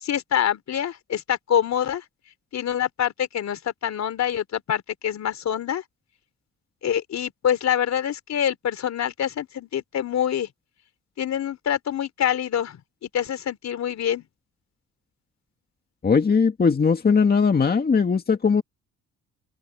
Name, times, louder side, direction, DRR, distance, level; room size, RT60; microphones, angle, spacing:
voice 1, 0.0-2.0 2.5-5.8 6.8-10.5 11.2-14.3, left 9 dB, 60° left, 3.8 m, -26 dB
voice 2, 16.0-18.6, left 5 dB, 30° left, 2.0 m, -19 dB
open air
cardioid pair, 90°, 30 cm